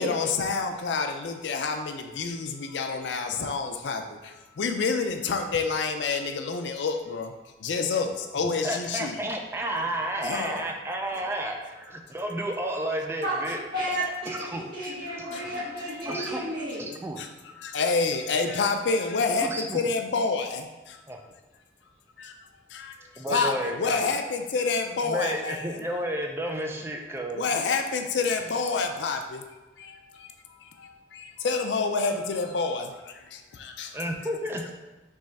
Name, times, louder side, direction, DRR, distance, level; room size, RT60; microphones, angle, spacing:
voice 1, 0.0-7.3 7.6-9.2 10.2-10.7 15.3-15.4 17.2-17.3 17.6-21.0 22.2-22.3 22.7-23.0 23.3-25.8 27.3-29.5 29.8-33.9, left 4 dB, 80° left, 6 dB, 0.4 m, -28 dB
voice 2, 8.4-13.6 14.3-14.7 16.1-16.4 17.0-17.2 19.4-19.9 21.1-21.2 23.2-24.0 25.0-27.5 33.9-34.7, right 1 dB, 15° right, 2 dB, 0.4 m, -31 dB
voice 3, 13.2-16.9, equal, 60° right, -12 dB, 1.2 m, -32 dB
3.6 x 3.1 x 4.0 m, 1.1 s
head